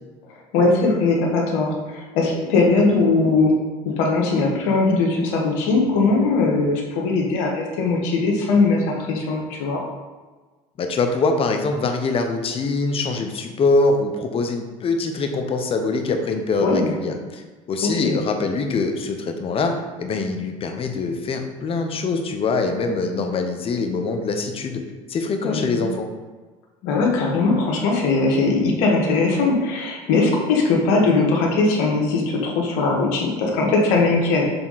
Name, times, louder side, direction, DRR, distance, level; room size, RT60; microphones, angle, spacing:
voice 1, 0.3-3.6 3.8-9.8 16.6-16.9 17.8-18.2 25.4-25.8 26.8-34.6, left 3 dB, 80° left, 0 dB, 1.4 m, -20 dB
voice 2, 10.8-24.8 25.1-26.1, left 3 dB, 40° left, 5 dB, 0.9 m, -23 dB
6.8 x 3.6 x 4.1 m, 1.3 s
supercardioid pair, 90°, 14 cm